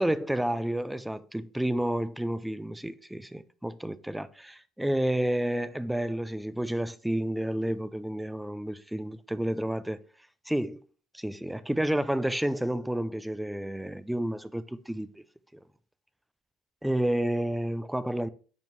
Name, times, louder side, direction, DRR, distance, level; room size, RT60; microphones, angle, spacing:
voice 1, 0.0-10.0 10.5-10.8 11.1-15.1 16.8-18.3, right 1 dB, 5° right, 0.6 m, -30 dB
9.2 x 5.4 x 3.2 m
hypercardioid pair, 70°, 0 cm